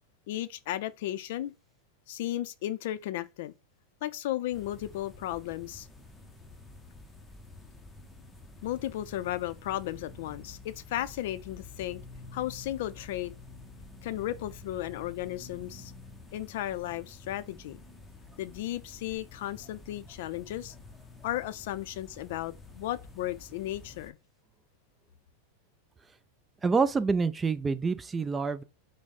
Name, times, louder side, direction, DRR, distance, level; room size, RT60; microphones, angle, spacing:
voice 1, 0.3-1.5 2.1-3.5 4.0-5.9 8.6-12.0 12.3-13.3 14.0-15.9 16.3-17.8 18.4-20.7 21.2-24.2, left 14 dB, 65° left, 0.5 m, -35 dB
sound 1, 4.5-24.1, left 3 dB, 10° left, 0.7 m, -49 dB
voice 2, 26.6-28.6, right 4 dB, 15° right, 0.3 m, -27 dB
6.1 x 2.1 x 4.1 m
supercardioid pair, 140°, 0 cm